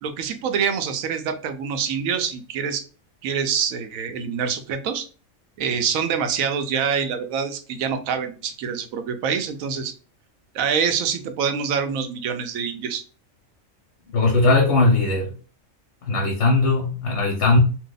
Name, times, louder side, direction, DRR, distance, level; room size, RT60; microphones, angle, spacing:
voice 1, 0.0-2.8 3.2-5.1 5.6-9.9 10.5-13.0, right 7 dB, 80° right, 8 dB, 1.0 m, -25 dB
voice 2, 14.1-15.3 16.0-17.6, left 2 dB, 60° left, 0 dB, 0.9 m, -19 dB
2.7 x 2.2 x 3.8 m, 0.38 s
omnidirectional pair, 1.4 m